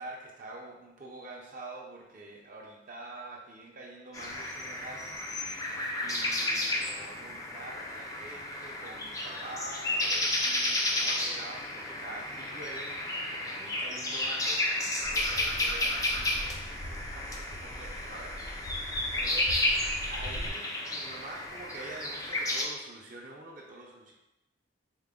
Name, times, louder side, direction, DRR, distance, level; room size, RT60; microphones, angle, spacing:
voice 1, 0.0-13.0 13.3-18.7 19.2-19.6 20.1-24.1, right 2 dB, 40° right, -2 dB, 0.5 m, -46 dB
sound 1, 4.1-22.6, left 1 dB, 15° left, 0.3 m, -32 dB
sound 2, 15.0-20.5, equal, 60° left, 0.7 m, -42 dB
4.3 x 2.0 x 3.6 m, 0.96 s
head